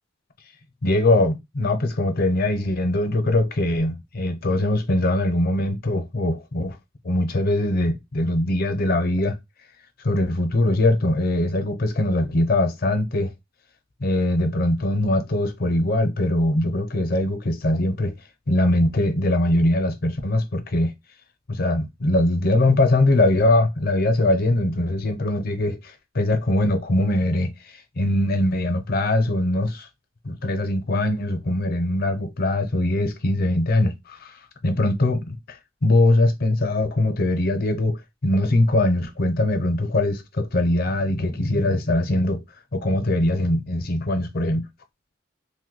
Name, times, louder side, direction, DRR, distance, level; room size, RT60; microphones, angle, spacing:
voice 1, 0.8-6.8 7.0-9.4 10.0-13.3 14.0-18.1 18.5-20.9 21.5-27.5 28.0-29.9 30.2-42.4 42.7-44.6, left 1 dB, 50° left, 0.6 m, -22 dB
2.6 x 2.1 x 3.8 m
head